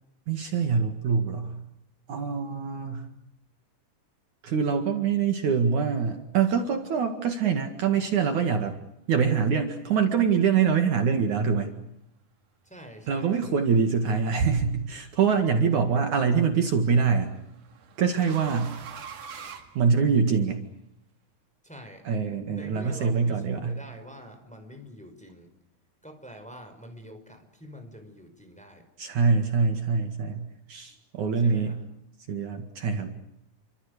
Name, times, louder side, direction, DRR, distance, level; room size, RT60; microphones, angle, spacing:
voice 1, 0.3-1.6 2.1-3.1 4.4-8.7 9.1-11.7 13.1-17.3 18.0-18.7 19.7-20.6 22.0-23.8 29.0-31.8 32.3-33.1, right 6 dB, 60° right, 5 dB, 3.2 m, -24 dB
voice 2, 12.6-13.6 21.6-22.1 22.4-25.5 26.0-28.9 31.4-31.8, equal, ahead, 5 dB, 4.8 m, -46 dB
sound 1, 14.6-15.0 16.5-20.5, right 7 dB, 85° right, 4.1 m, -44 dB
29.5 x 25.5 x 6.7 m, 0.79 s
omnidirectional pair, 4.1 m